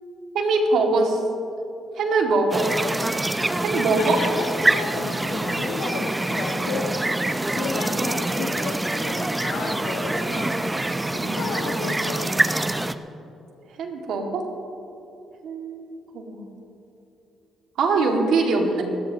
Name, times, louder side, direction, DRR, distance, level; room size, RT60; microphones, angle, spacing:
voice 1, 0.3-1.2 2.0-2.7 3.6-4.2 8.0-8.1 11.2-11.4 13.8-14.5 15.4-16.5 17.8-18.8, right 3 dB, 75° right, 1 dB, 2.1 m, -23 dB
sound 1, 2.5-12.9, right 1 dB, 15° right, 0.6 m, -25 dB
voice 2, 4.0-7.0 7.6-10.6 11.1-12.3, left 4 dB, 85° left, -1 dB, 1.7 m, -32 dB
26.5 x 14.0 x 3.0 m, 2.8 s
cardioid pair, 90°, 0 cm